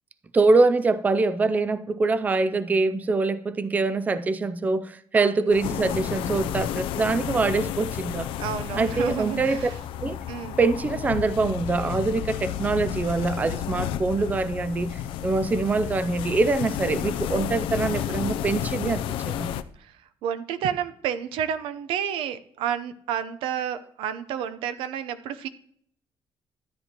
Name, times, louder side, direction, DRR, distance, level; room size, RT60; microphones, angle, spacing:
voice 1, 0.3-8.3 8.7-9.7 10.0-10.2 10.6-19.5, right 3 dB, 20° right, 0.4 m, -24 dB
sound 1, 5.5-19.6, left 10 dB, 85° left, 0.5 m, -31 dB
voice 2, 8.4-9.8 10.3-10.6 19.8-19.9 20.2-25.5, right 9 dB, 90° right, 0.8 m, -30 dB
13.0 x 9.3 x 3.0 m
cardioid pair, 140°, 9 cm